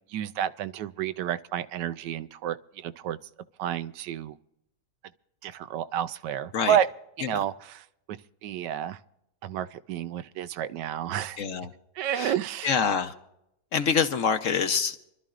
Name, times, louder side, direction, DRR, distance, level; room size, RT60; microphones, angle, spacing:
voice 1, 0.1-3.2 3.6-4.3 5.4-6.9 7.2-9.0 9.4-11.4 12.0-12.8, right 10 dB, 90° right, 1.3 m, -30 dB
voice 2, 11.4-11.7 12.2-12.3 12.6-13.1 13.7-15.0, left 6 dB, 60° left, 1.0 m, -25 dB
27.0 x 12.5 x 2.5 m
omnidirectional pair, 1.8 m